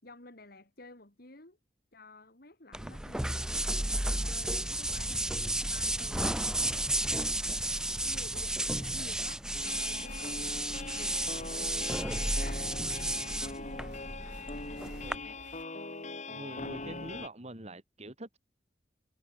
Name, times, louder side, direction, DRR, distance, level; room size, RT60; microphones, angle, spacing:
voice 1, 0.0-1.6 1.9-3.6 3.9-10.6 10.9-13.9 14.7-15.1 15.5-15.6 16.7-17.0, left 2 dB, 60° left, 3.8 m, -53 dB
sound 1, 2.7-15.2, right 1 dB, 5° right, 0.4 m, -33 dB
sound 2, 4.7-15.6, right 1 dB, 80° right, 5.0 m, -58 dB
sound 3, 9.5-17.3, left 3 dB, 40° left, 3.3 m, -41 dB
voice 2, 16.3-18.4, right 1 dB, 40° right, 3.2 m, -44 dB
head